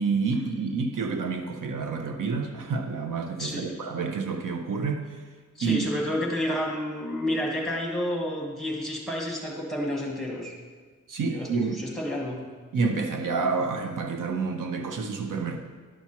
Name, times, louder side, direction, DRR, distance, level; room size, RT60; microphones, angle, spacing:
voice 1, 0.0-5.2 5.6-5.8 11.1-11.8 12.7-15.6, right 4 dB, 75° right, 5 dB, 0.7 m, -28 dB
voice 2, 3.4-3.7 5.5-10.5 11.2-12.4, left 1 dB, ahead, -3 dB, 1.5 m, -30 dB
11.0 x 5.8 x 2.9 m, 1.5 s
wide cardioid pair, 155°, 32 cm